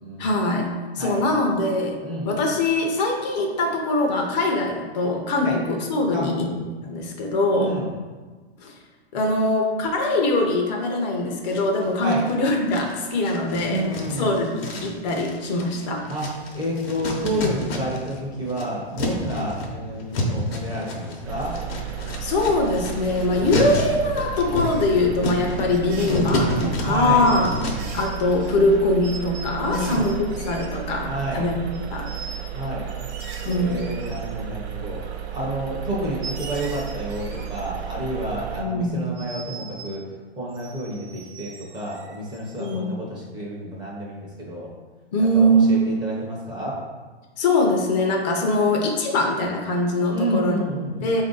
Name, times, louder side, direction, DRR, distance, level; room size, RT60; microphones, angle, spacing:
voice 1, 0.2-2.0 2.2-6.5 6.8-7.7 8.6-8.7 9.1-13.8 14.2-16.0 22.2-27.5 27.9-31.6 31.9-32.1 33.4-33.8 38.6-39.1 42.6-42.9 45.1-45.9 47.4-50.6 51.0-51.2, left 1 dB, 40° left, 1 dB, 0.7 m, -22 dB
voice 2, 6.1-6.6 7.6-7.9 12.0-12.2 13.7-14.6 16.1-16.3 16.5-21.5 26.0-26.2 26.8-27.4 29.6-30.2 31.1-31.5 32.5-32.9 33.5-35.0 35.3-40.0 40.4-44.7 45.2-46.8 50.1-51.1, right 1 dB, 15° right, -5 dB, 0.6 m, -29 dB
sound 1, 11.5-12.3 12.7-18.2 18.4-28.0, left 1 dB, 65° left, 1.0 m, -30 dB
sound 2, 21.2-38.6, right 9 dB, 75° right, 0.6 m, -34 dB
sound 3, 24.5-24.9 25.7-26.9 27.2-31.0 31.3-31.4 31.7-32.5 32.9-34.6 35.4-35.5 36.0-38.0 39.2-40.0 40.5-42.8, right 4 dB, 40° right, 0.9 m, -41 dB
4.2 x 2.6 x 3.8 m, 1.4 s
hypercardioid pair, 145°, 32 cm